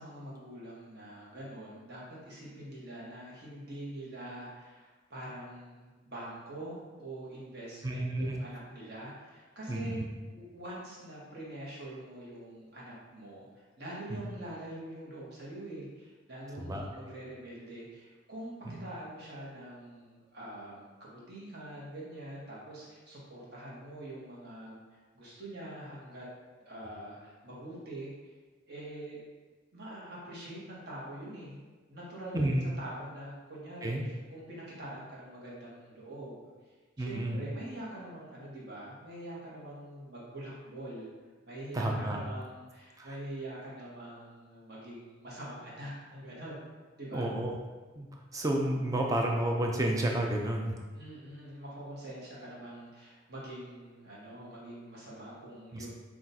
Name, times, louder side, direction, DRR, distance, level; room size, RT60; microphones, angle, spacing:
voice 1, 0.0-10.0 10.3-24.8 25.1-26.3 26.6-28.3 28.7-29.2 29.7-31.6 31.9-36.4 37.0-41.1 41.4-46.7 47.0-47.3 50.9-55.9, right 1 dB, 50° right, -6 dB, 1.2 m, -44 dB
voice 2, 7.8-8.3 9.7-10.0 14.1-14.2 16.6-16.8 18.7-18.8 32.3-32.6 33.8-34.0 37.0-37.4 41.7-42.2 43.0-43.2 47.1-47.6 48.0-50.8 55.7-55.9, right 1 dB, 15° right, 1 dB, 0.4 m, -31 dB
5.9 x 2.4 x 2.7 m, 1.3 s
head